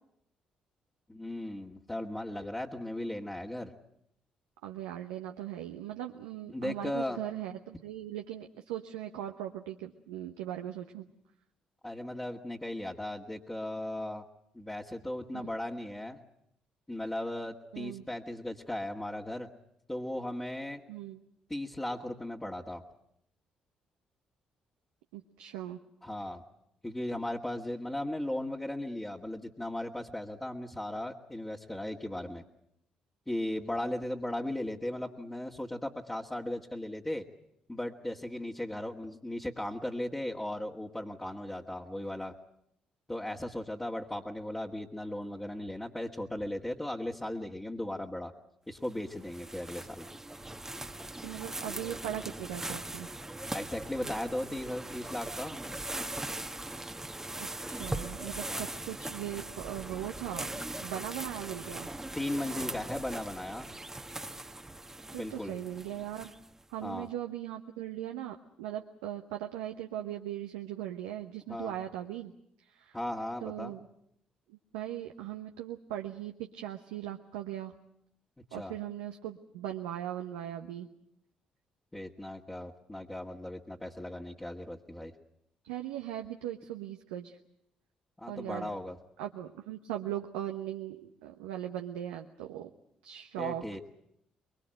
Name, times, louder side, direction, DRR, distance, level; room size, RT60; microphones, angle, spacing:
voice 1, 1.1-3.7 6.5-7.2 11.8-14.2 14.5-16.2 16.9-19.5 19.9-20.8 21.5-22.8 26.0-26.4 26.8-32.4 33.3-37.2 37.7-42.3 43.1-48.3 48.7-50.1 53.5-55.6 58.5-58.6 62.1-63.7 65.1-65.5 66.8-67.1 71.5-71.7 72.9-73.7 78.5-78.7 81.9-85.1 88.2-89.0 93.4-93.8, left 1 dB, 15° left, -3 dB, 2.1 m, -37 dB
voice 2, 4.6-11.1 15.3-15.5 17.7-18.1 20.9-21.2 25.1-25.8 51.2-53.1 57.4-61.9 65.1-66.3 66.7-72.3 72.6-73.0 73.4-73.9 74.5-77.7 78.5-80.9 85.6-87.4 88.3-88.7 89.2-92.7 93.0-93.8, right 12 dB, 85° right, 3 dB, 1.1 m, -39 dB
sound 1, 48.8-66.6, right 1 dB, 15° right, 1.4 m, -40 dB
24.0 x 22.5 x 7.9 m, 0.75 s
hypercardioid pair, 50°, 3 cm